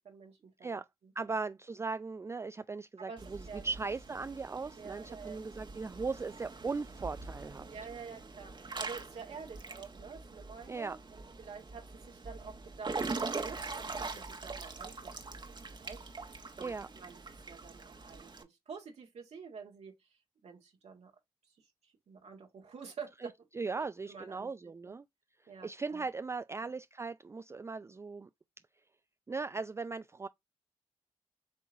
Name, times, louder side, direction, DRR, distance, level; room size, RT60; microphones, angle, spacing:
voice 1, 0.0-0.8 3.0-3.7 4.8-5.4 7.7-17.2 17.5-21.1 21.6-23.3 23.8-24.5 24.8-25.0 25.5-26.0 26.5-26.7, right 5 dB, 65° right, 1.4 m, -49 dB
voice 2, 1.2-7.7 10.7-11.0 16.6-16.9 23.5-25.0 25.4-28.3 29.3-30.3, right 4 dB, 25° right, 0.3 m, -38 dB
Water / Splash splatter / Drip, 3.2-18.4, right 3 dB, 40° right, 1.2 m, -43 dB
7.2 x 2.9 x 2.5 m
supercardioid pair, 45°, 12 cm